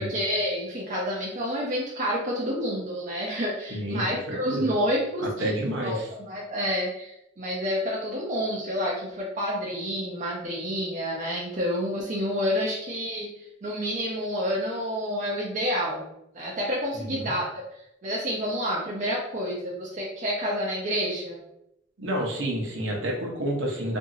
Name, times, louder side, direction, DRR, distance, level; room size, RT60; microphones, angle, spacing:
voice 1, 0.0-5.5 5.8-6.0 6.3-13.3 13.6-16.0 16.3-17.5 18.0-21.4, equal, 40° right, -4 dB, 0.5 m, -29 dB
voice 2, 3.7-4.7 5.4-6.1 16.9-17.3 22.0-24.0, right 1 dB, 70° right, -1 dB, 0.8 m, -29 dB
2.8 x 2.6 x 2.6 m, 0.81 s
head